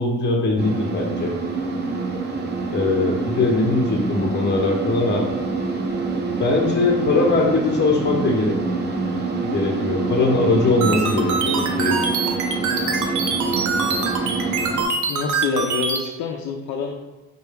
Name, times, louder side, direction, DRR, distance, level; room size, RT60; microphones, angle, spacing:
voice 1, 0.0-1.3 2.7-5.3 6.4-8.6 9.5-12.1, left 2 dB, 35° left, 1 dB, 0.8 m, -21 dB
sound 1, 0.6-14.8, right 3 dB, 35° right, 0.6 m, -26 dB
sound 2, 10.8-16.0, right 5 dB, 75° right, 0.6 m, -24 dB
voice 2, 15.1-16.9, left 5 dB, 70° left, 1 dB, 0.4 m, -26 dB
4.3 x 2.3 x 3.4 m, 1.1 s
cardioid pair, 90°, 30 cm